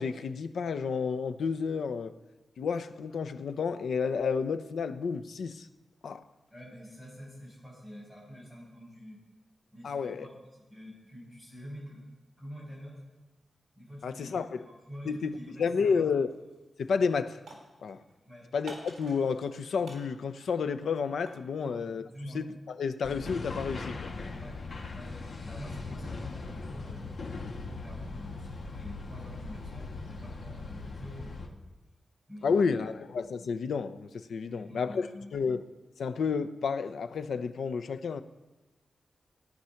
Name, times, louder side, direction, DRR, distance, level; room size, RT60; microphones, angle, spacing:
voice 1, 0.0-2.1 2.6-5.7 6.0-6.2 9.8-10.3 14.0-14.7 15.1-16.3 16.8-17.4 17.8-18.0 18.5-22.0 22.3-22.4 22.8-24.1 32.4-35.1 35.3-35.6 36.0-38.2, left 5 dB, 80° left, 0.8 m, -31 dB
voice 2, 6.5-9.2 9.7-12.1 12.4-13.0 13.7-16.1 18.2-18.5 21.6-21.8 22.0-22.4 24.3-24.6 24.9-27.2 27.6-31.5 32.3-32.9 34.4-35.4, equal, 10° left, 6.2 m, -46 dB
sound 1, 16.3-16.6 16.9-18.1 18.7-19.6 19.8-21.5, right 2 dB, 55° right, 4.1 m, -50 dB
sound 2, 23.0-31.5, left 3 dB, 50° left, 1.6 m, -40 dB
17.0 x 9.8 x 5.9 m
wide cardioid pair, 175°, 0 cm